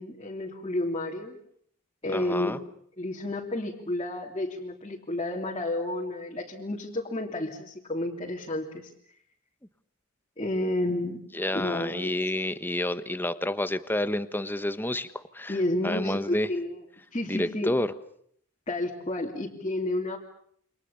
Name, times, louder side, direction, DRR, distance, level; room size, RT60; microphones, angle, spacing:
voice 1, 0.0-1.4 2.0-2.6 3.0-8.9 10.4-11.2 11.5-12.2 15.5-16.7 17.1-17.7 18.7-20.2, left 1 dB, 25° left, -2 dB, 3.0 m, -31 dB
voice 2, 2.1-2.6 11.3-16.5 17.3-17.9, left 1 dB, 10° left, 12 dB, 1.2 m, -29 dB
29.0 x 26.0 x 7.1 m, 0.67 s
head